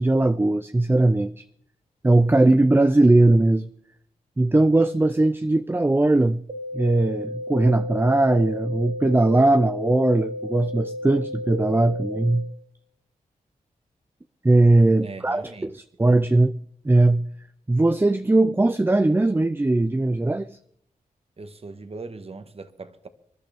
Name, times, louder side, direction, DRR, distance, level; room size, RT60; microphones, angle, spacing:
voice 1, 0.0-1.4 2.0-3.7 4.4-6.4 6.7-12.4 14.4-15.7 16.0-16.5 16.8-17.2 17.7-20.5, right 2 dB, 15° right, 0.5 m, -19 dB
sound 1, 6.5-12.5, left 1 dB, 60° right, 1.5 m, -33 dB
voice 2, 15.0-15.8 21.4-23.1, right 3 dB, 45° right, 1.3 m, -39 dB
26.0 x 11.5 x 3.5 m
cardioid pair, 60°, 14 cm